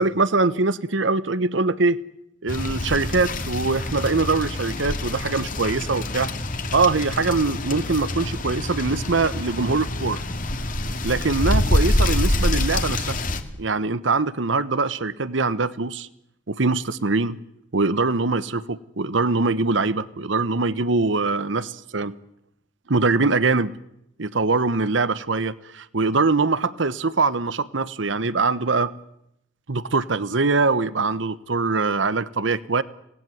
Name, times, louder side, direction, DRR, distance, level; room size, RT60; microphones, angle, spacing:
voice 1, 0.0-2.0 2.4-6.3 6.7-10.2 11.0-13.2 13.6-16.1 16.5-17.4 17.7-22.2 22.9-23.8 24.2-28.9 29.7-32.8, right 3 dB, 70° right, 16 dB, 1.1 m, -23 dB
sound 1, 2.5-13.4, left 1 dB, 45° left, 2.1 m, -26 dB
26.5 x 19.0 x 9.2 m, 0.78 s
head